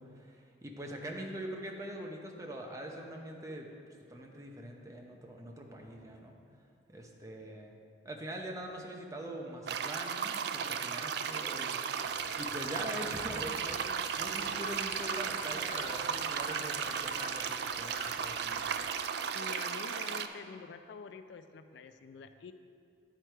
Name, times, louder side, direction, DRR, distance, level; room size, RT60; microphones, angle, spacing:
voice 1, 0.0-3.7 4.1-6.4 6.9-7.7 8.0-11.8 12.4-18.9, right 1 dB, 15° right, 0 dB, 0.7 m, -43 dB
sound 1, 9.7-20.3, right 7 dB, 60° right, 0.3 m, -35 dB
sound 2, 12.0-18.8, left 2 dB, 45° left, 0.9 m, -49 dB
voice 2, 19.3-22.5, left 5 dB, 70° left, 10 dB, 0.3 m, -47 dB
10.0 x 4.7 x 4.5 m, 2.5 s
head